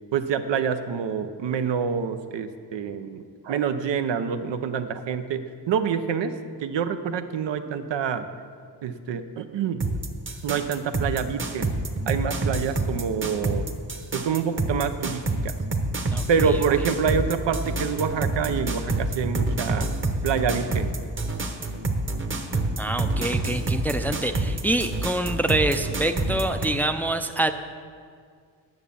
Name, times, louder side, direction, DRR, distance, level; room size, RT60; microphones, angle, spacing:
voice 1, 0.1-8.3 8.8-9.8 10.4-11.7 12.1-13.7 14.1-15.5 16.3-19.9 20.2-20.9, right 6 dB, 80° right, 9 dB, 0.8 m, -27 dB
sound 1, 9.8-26.7, right 2 dB, 30° right, 1.0 m, -27 dB
voice 2, 22.8-27.5, right 1 dB, 5° left, 8 dB, 0.4 m, -26 dB
9.9 x 7.2 x 6.9 m, 2.1 s
cardioid pair, 110°, 42 cm